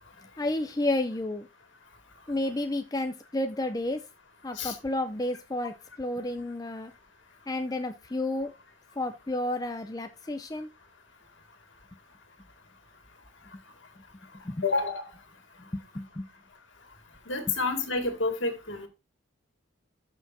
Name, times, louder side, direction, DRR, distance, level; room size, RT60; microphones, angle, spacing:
voice 1, 0.4-1.5 2.3-4.0 4.4-6.9 7.5-8.5 9.0-10.7 14.5-14.6 15.7-16.3, left 1 dB, 20° left, 7 dB, 0.5 m, -31 dB
voice 2, 14.6-15.1 17.3-18.9, left 3 dB, 65° left, 5 dB, 2.2 m, -29 dB
13.5 x 5.9 x 2.7 m, 0.26 s
head